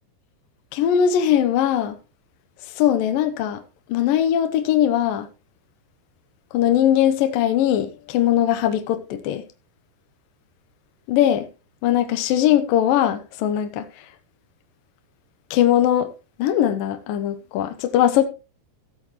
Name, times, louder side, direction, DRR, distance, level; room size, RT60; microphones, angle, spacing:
voice 1, 0.7-2.0 2.8-3.6 3.9-5.3 6.5-9.5 11.1-11.5 11.8-13.9 15.5-16.1 16.4-18.3, left 10 dB, 75° left, 2.2 m, -20 dB
15.0 x 8.8 x 3.1 m
omnidirectional pair, 5.0 m